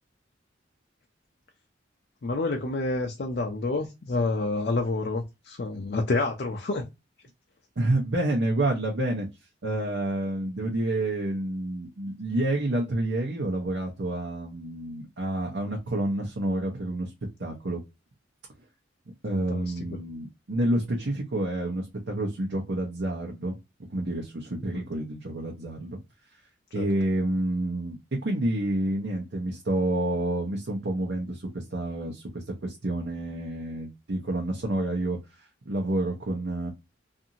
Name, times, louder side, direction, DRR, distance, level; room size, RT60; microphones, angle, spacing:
voice 1, 2.2-6.9 19.3-19.7 24.7-24.8 26.7-26.9, left 3 dB, 55° left, 0.5 m, -28 dB
voice 2, 7.8-9.3 9.6-17.1 17.4-17.8 19.2-23.6 23.9-26.0 26.7-28.0 28.2-36.7, right 1 dB, 75° right, 0.7 m, -29 dB
2.6 x 2.6 x 2.7 m
head